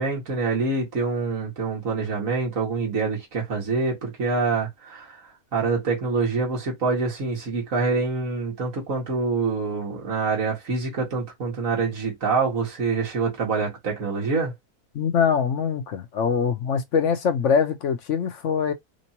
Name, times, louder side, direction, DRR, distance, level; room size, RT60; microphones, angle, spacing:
voice 1, 0.0-5.2 5.5-14.5, right 4 dB, 55° right, 2.2 m, -26 dB
voice 2, 14.9-18.7, left 6 dB, 55° left, 1.1 m, -23 dB
5.2 x 2.8 x 2.9 m
omnidirectional pair, 1.7 m